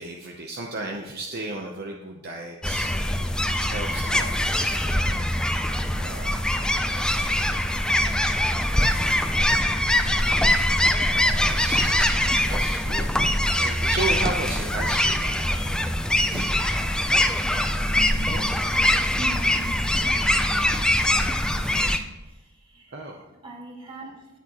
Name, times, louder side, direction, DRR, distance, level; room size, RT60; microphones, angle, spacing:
voice 1, 0.0-3.3 3.6-5.3 6.0-7.7 11.4-12.2 12.4-13.1 13.5-15.6 16.3-16.6 17.4-18.4 22.9-23.3, right 2 dB, 50° right, 1 dB, 0.9 m, -35 dB
sound 1, 2.6-22.0, left 1 dB, 5° left, 0.5 m, -23 dB
voice 2, 17.8-24.2, equal, 25° right, -3 dB, 2.3 m, -41 dB
18.0 x 7.2 x 3.0 m, 1.0 s
head